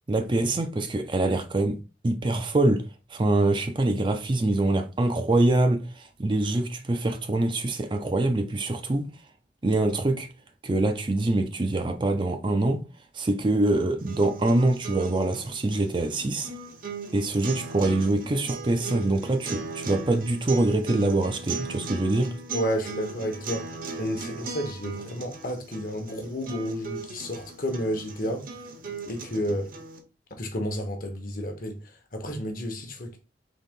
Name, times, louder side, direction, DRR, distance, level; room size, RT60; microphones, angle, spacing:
voice 1, 0.1-1.8 2.0-9.1 9.6-10.3 10.6-12.8 13.1-16.5 17.1-22.3, right 2 dB, 25° right, 0.4 m, -24 dB
sound 1, 14.0-30.0, right 3 dB, 50° right, 0.8 m, -38 dB
voice 2, 22.5-28.5 29.0-29.7 30.3-33.2, equal, 50° left, 1.0 m, -31 dB
4.1 x 2.9 x 3.6 m
head